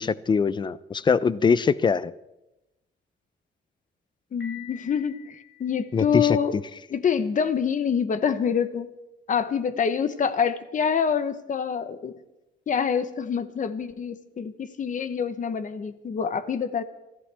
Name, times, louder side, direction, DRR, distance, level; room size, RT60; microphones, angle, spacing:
voice 1, 0.0-2.1 5.9-6.4, left 5 dB, 20° left, 17 dB, 0.5 m, -22 dB
voice 2, 4.3-6.6 6.9-8.9 9.3-12.1 12.7-16.8, left 7 dB, 40° left, 11 dB, 1.0 m, -26 dB
Piano, 4.4-6.4, left 10 dB, 65° left, 7.0 m, -47 dB
26.5 x 14.5 x 3.5 m, 0.93 s
cardioid pair, 165°, 21 cm